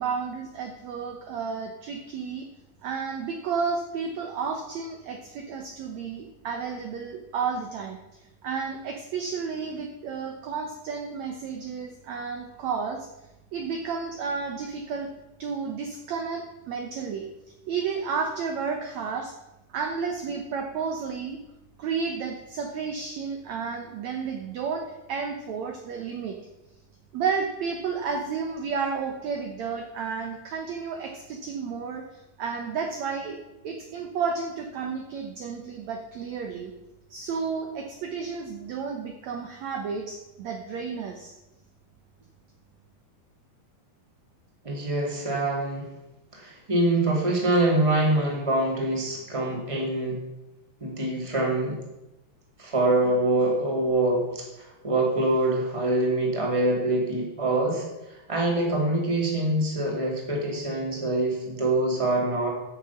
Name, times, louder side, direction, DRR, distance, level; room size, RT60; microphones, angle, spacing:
voice 1, 0.0-2.5 2.8-8.0 8.4-13.1 13.5-15.1 15.4-17.3 17.7-19.3 19.7-21.4 21.8-26.4 27.1-33.4 33.6-36.7 37.1-41.4, right 5 dB, 70° right, 3 dB, 1.7 m, -32 dB
voice 2, 44.6-45.9 46.3-50.2 50.8-51.8 52.6-62.5, right 2 dB, 10° right, -1 dB, 2.1 m, -25 dB
15.5 x 6.9 x 5.8 m, 0.99 s
omnidirectional pair, 4.5 m